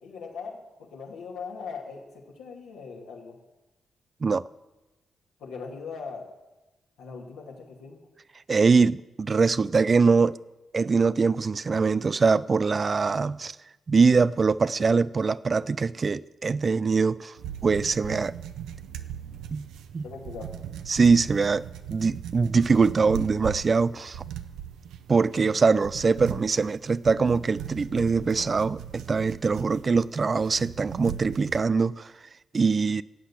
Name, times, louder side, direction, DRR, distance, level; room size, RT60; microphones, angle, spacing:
voice 1, 0.0-3.3 5.4-6.2 7.0-8.0 20.0-20.5 25.4-25.7, left 5 dB, 85° left, 2.5 m, -40 dB
voice 2, 8.5-10.4 10.7-13.6 13.9-17.3 17.6-18.3 19.5-19.6 19.9-20.1 20.9-24.2 25.1-32.1 32.5-33.0, right 4 dB, 45° right, 0.4 m, -23 dB
sound 1, 17.4-31.7, right 9 dB, 85° right, 0.7 m, -39 dB
14.0 x 8.3 x 7.4 m
supercardioid pair, 45°, 0 cm